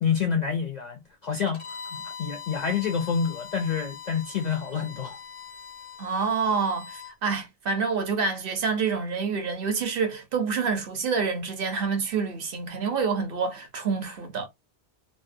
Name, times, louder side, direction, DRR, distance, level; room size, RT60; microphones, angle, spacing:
voice 1, 0.0-5.2, left 6 dB, 60° left, 0.4 m, -28 dB
Bowed string instrument, 1.5-7.1, left 7 dB, 85° left, 1.2 m, -42 dB
voice 2, 6.0-14.5, right 5 dB, 60° right, 0.8 m, -27 dB
2.6 x 2.0 x 2.4 m
omnidirectional pair, 1.2 m